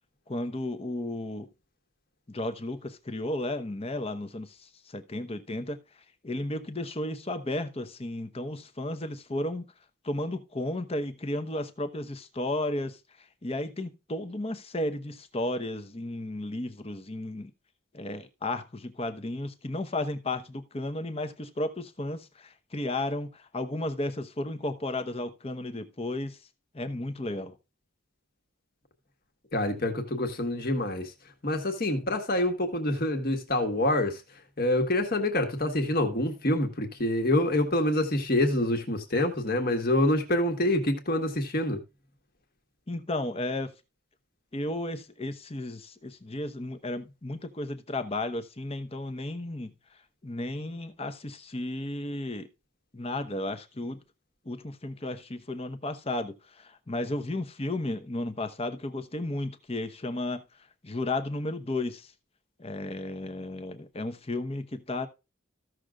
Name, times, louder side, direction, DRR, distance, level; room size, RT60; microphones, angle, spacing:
voice 1, 0.3-1.5 2.3-5.8 6.2-9.7 10.0-13.0 13.4-17.5 17.9-26.4 26.7-27.5 42.9-43.7 44.5-49.7 50.2-52.5 52.9-54.0 54.4-60.4 60.8-62.1 62.6-65.1, left 1 dB, 30° left, 0.9 m, -33 dB
voice 2, 29.5-31.1 31.4-34.2 34.6-41.8, left 1 dB, 45° left, 1.6 m, -26 dB
15.0 x 6.4 x 2.4 m
head